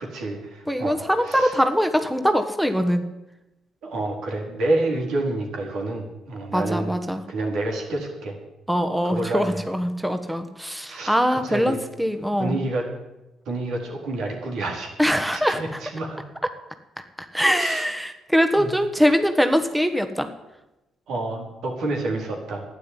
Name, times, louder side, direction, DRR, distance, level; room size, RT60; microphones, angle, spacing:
voice 1, 0.0-1.0 1.3-1.5 3.8-6.9 7.3-8.4 9.0-9.5 10.9-11.1 11.4-11.8 12.4-12.8 13.5-15.2 15.6-16.2 17.6-17.8 18.6-18.7 21.1-22.6, right 2 dB, 75° right, 0 dB, 4.2 m, -28 dB
voice 2, 0.7-3.0 6.5-7.2 8.7-12.6 15.0-15.8 17.2-20.3, equal, 5° right, 7 dB, 1.3 m, -22 dB
12.0 x 9.7 x 9.9 m, 0.99 s
cardioid pair, 75°, 0 cm